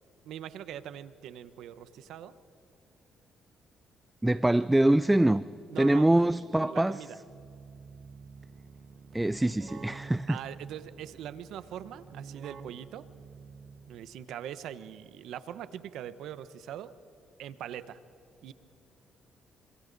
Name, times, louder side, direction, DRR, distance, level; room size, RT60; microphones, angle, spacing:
voice 1, 0.2-2.3 5.7-7.2 10.3-13.0 13.9-16.9 17.4-18.0 18.4-18.5, right 10 dB, 85° right, 14 dB, 0.9 m, -42 dB
voice 2, 4.2-5.4 5.8-7.0 9.1-10.4, right 1 dB, 10° right, 16 dB, 0.4 m, -24 dB
Keyboard (musical), 7.2-14.1, right 5 dB, 55° right, 1.4 m, -49 dB
29.0 x 26.5 x 4.1 m, 2.8 s
cardioid pair, 90°, 0 cm